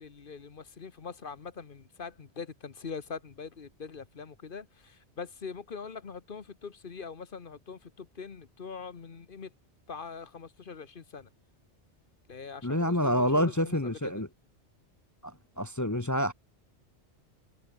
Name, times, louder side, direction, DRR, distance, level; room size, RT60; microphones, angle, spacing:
voice 1, 0.0-9.5 9.9-11.3 12.3-14.1, left 5 dB, 50° left, 1.3 m, -43 dB
voice 2, 12.6-14.3 15.2-16.3, equal, 15° left, 0.8 m, -28 dB
omnidirectional pair, 1.2 m